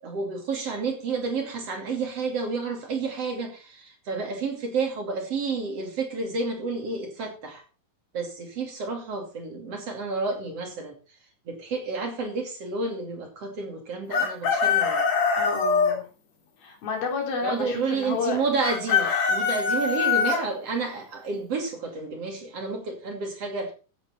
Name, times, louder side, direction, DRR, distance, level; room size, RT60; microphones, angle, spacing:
voice 1, 0.0-7.6 8.1-11.0 11.5-15.0 17.4-23.7, right 4 dB, 45° right, 3 dB, 3.3 m, -30 dB
Chicken rooster, 14.1-16.0 18.6-20.4, left 5 dB, 50° left, 3.6 m, -23 dB
voice 2, 15.4-16.1 16.6-18.4, left 5 dB, 90° left, 2 dB, 5.2 m, -30 dB
15.5 x 8.7 x 4.2 m, 0.34 s
omnidirectional pair, 4.1 m